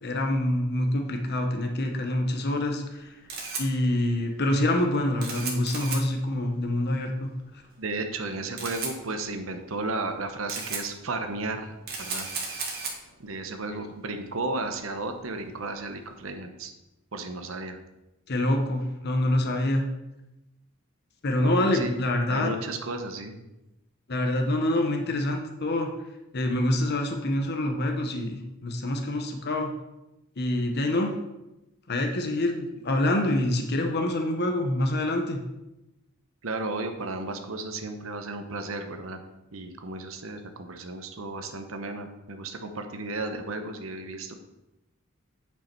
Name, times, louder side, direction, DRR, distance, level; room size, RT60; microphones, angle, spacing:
voice 1, 0.0-3.2 3.6-7.3 18.3-19.8 21.2-22.6 24.1-25.9 26.3-29.7 30.4-31.1 31.9-35.4, left 1 dB, 50° left, 3 dB, 0.9 m, -26 dB
Camera, 2.9-16.3, right 4 dB, 50° right, 1.8 m, -38 dB
voice 2, 7.8-12.3 13.2-16.7 17.1-17.8 21.4-21.9 22.3-23.4 36.4-39.2 39.5-44.4, right 2 dB, 70° right, 6 dB, 0.9 m, -34 dB
8.9 x 5.5 x 4.5 m, 0.96 s
head